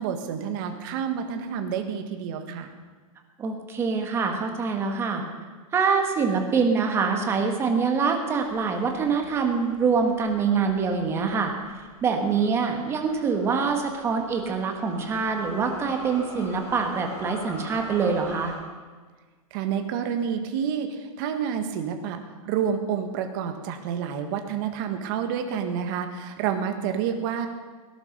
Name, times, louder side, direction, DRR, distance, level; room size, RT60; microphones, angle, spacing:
voice 1, 0.0-2.7 19.5-22.2 22.4-27.5, right 8 dB, 35° right, 6 dB, 1.6 m, -29 dB
voice 2, 3.4-5.2 5.7-11.5 12.0-18.5, right 5 dB, 15° right, 4 dB, 1.5 m, -25 dB
sound 1, 8.3-18.6, left 1 dB, 15° left, 3.2 m, -44 dB
18.0 x 11.5 x 6.7 m, 1.4 s
supercardioid pair, 170°, 18 cm